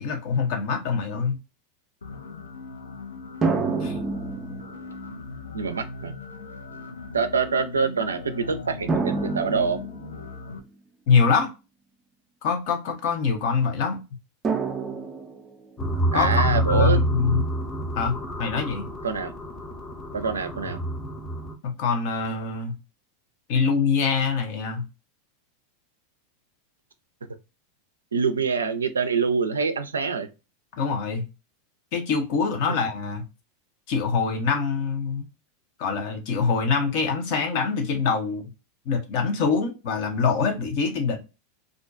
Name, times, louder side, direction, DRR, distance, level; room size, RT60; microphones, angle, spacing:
voice 1, 0.0-1.4 3.8-4.0 11.1-11.5 12.4-14.0 16.1-17.4 18.0-18.9 21.6-22.8 23.5-24.9 30.8-31.3 31.9-33.2 33.9-35.3 35.8-38.4 38.9-41.2, left 5 dB, 55° left, 0.7 m, -24 dB
sound 1, 2.0-10.6, left 3 dB, 85° left, 0.4 m, -39 dB
sound 2, 3.4-5.2 6.1-6.2 8.9-10.6 14.4-15.8, right 4 dB, 25° right, 0.5 m, -28 dB
voice 2, 3.4-4.0 5.5-6.1 7.1-9.8 16.1-17.0 19.0-19.3 20.1-20.8 28.1-30.3, right 5 dB, 85° right, 0.3 m, -25 dB
sound 3, 15.8-21.5, right 1 dB, 20° left, 0.6 m, -28 dB
2.4 x 2.2 x 2.4 m
hypercardioid pair, 90°, 0 cm